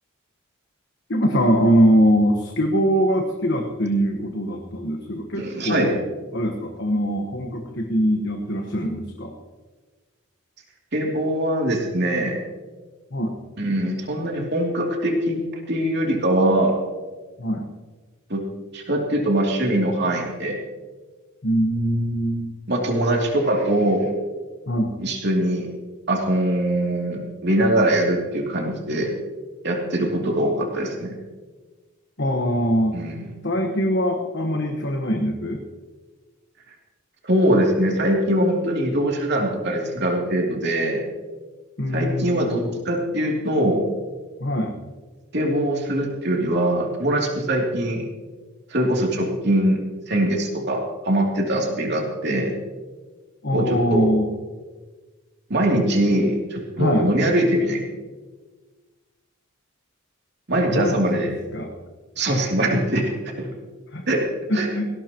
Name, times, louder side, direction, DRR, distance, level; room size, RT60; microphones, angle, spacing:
voice 1, 1.1-6.0 6.3-9.3 13.1-13.3 17.4-17.7 21.4-22.5 24.7-24.9 32.2-33.0 33.4-35.6 41.8-42.7 44.4-44.8 53.4-54.3 56.8-57.1 60.6-61.7 63.9-64.0 64.5-64.9, equal, 55° left, 2 dB, 1.3 m, -22 dB
voice 2, 5.4-5.9 10.9-12.4 13.6-15.4 15.7-16.8 18.3-18.4 18.7-20.6 22.7-24.1 25.0-25.7 26.1-29.1 29.6-31.1 32.9-33.3 37.2-41.1 41.9-43.9 45.3-48.0 48.7-52.5 53.5-54.1 55.5-57.8 60.5-61.3 62.2-63.1 63.4-63.5 64.1-64.3 64.5-64.7, right 1 dB, 50° right, 0 dB, 2.8 m, -22 dB
19.0 x 16.5 x 3.0 m, 1.3 s
head